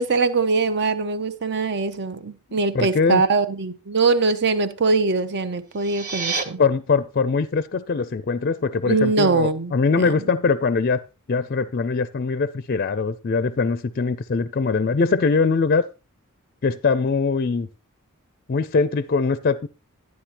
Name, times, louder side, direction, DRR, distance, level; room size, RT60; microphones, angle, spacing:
voice 1, 0.0-6.6 8.9-10.1, right 4 dB, 50° right, 0.7 m, -22 dB
voice 2, 2.5-3.2 6.6-11.0 11.3-15.9 16.6-17.7 18.5-19.7, left 4 dB, 45° left, 0.4 m, -22 dB
sound 1, 5.6-6.4, right 4 dB, 35° right, 1.2 m, -28 dB
11.5 x 9.6 x 2.9 m
head